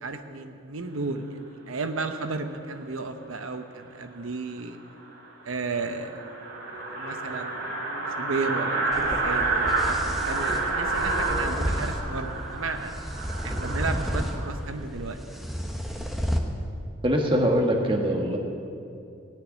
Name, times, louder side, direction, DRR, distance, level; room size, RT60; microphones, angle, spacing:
voice 1, 0.0-4.8 5.4-6.2 7.0-7.9 8.2-12.9 13.4-15.2, right 3 dB, 80° right, 7 dB, 0.9 m, -33 dB
sound 1, 4.6-4.7 5.1-5.2 5.4-5.5 5.8-14.5, right 3 dB, 55° right, 3.5 m, -29 dB
sound 2, 8.9-16.4, equal, ahead, 1.0 m, -32 dB
voice 2, 17.0-18.4, equal, 25° right, 2 dB, 1.5 m, -23 dB
17.5 x 6.7 x 10.0 m, 2.5 s
head